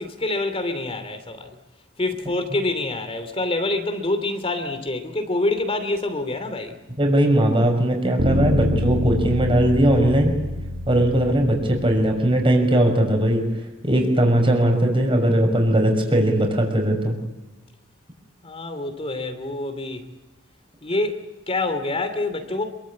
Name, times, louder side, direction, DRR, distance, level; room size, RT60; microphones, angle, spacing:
voice 1, 0.0-1.5 2.0-6.8 18.4-20.1 20.8-22.7, left 2 dB, 25° left, 2.7 m, -26 dB
voice 2, 7.0-10.3 10.9-13.5 13.8-17.2, right 1 dB, 25° right, 6.2 m, -19 dB
sound 1, 8.2-12.3, left 1 dB, 60° right, 2.2 m, -26 dB
28.0 x 23.5 x 8.7 m
head